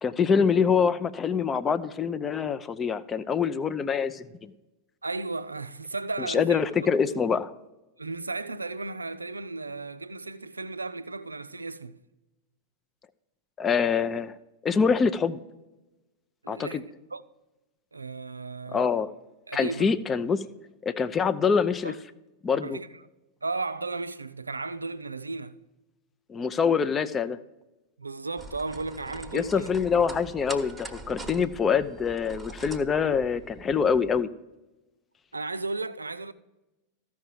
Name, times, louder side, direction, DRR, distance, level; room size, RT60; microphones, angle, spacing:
voice 1, 0.0-4.5 6.2-7.5 13.6-14.4 14.6-15.4 16.5-16.8 18.7-19.1 19.5-20.5 20.8-21.9 22.4-22.8 26.3-27.4 29.3-34.3, left 6 dB, 20° left, 0.5 m, -25 dB
voice 2, 5.0-6.7 7.1-7.2 8.0-12.0 16.4-16.8 17.1-17.2 17.9-18.9 19.5-19.9 21.8-21.9 22.5-22.9 23.4-25.6 28.0-29.7 35.3-36.3, right 3 dB, 80° right, 0.4 m, -35 dB
sound 1, 28.4-34.2, right 2 dB, ahead, 1.1 m, -43 dB
14.5 x 5.8 x 4.6 m
figure-of-eight pair, 90°, 0 cm